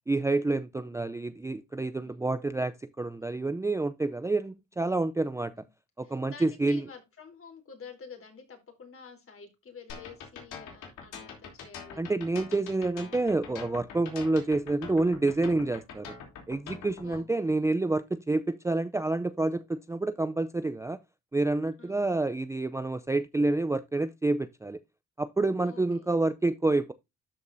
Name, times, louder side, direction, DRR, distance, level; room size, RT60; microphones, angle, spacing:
voice 1, 0.1-5.5 6.0-6.8 12.0-16.2 16.5-21.0 21.3-24.8 25.2-26.9, right 2 dB, 10° right, 0.4 m, -28 dB
voice 2, 3.2-3.5 4.4-4.6 5.5-5.7 6.0-12.0 17.0-17.5 21.8-22.0 25.6-26.1, left 6 dB, 45° left, 3.5 m, -49 dB
sound 1, 9.9-17.2, left 6 dB, 85° left, 3.1 m, -44 dB
12.5 x 5.2 x 2.6 m
cardioid pair, 90°, 30 cm